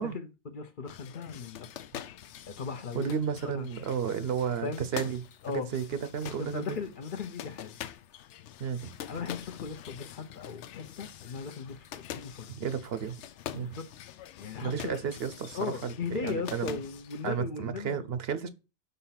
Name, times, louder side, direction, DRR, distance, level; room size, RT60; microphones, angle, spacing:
voice 1, 0.0-1.7 2.5-3.2 3.5-3.7 4.6-4.8 5.4-5.7 6.4-7.8 9.1-12.6 13.6-13.9 14.4-15.0 15.5-18.0, left 5 dB, 50° left, 0.8 m, -37 dB
sound 1, 0.9-17.4, left 11 dB, 80° left, 0.9 m, -45 dB
voice 2, 2.9-5.2 5.5-6.8 8.6-8.9 12.5-13.2 13.5-13.7 14.6-16.8 17.2-18.5, right 7 dB, 65° right, 0.8 m, -32 dB
5.5 x 3.9 x 5.7 m
omnidirectional pair, 1.2 m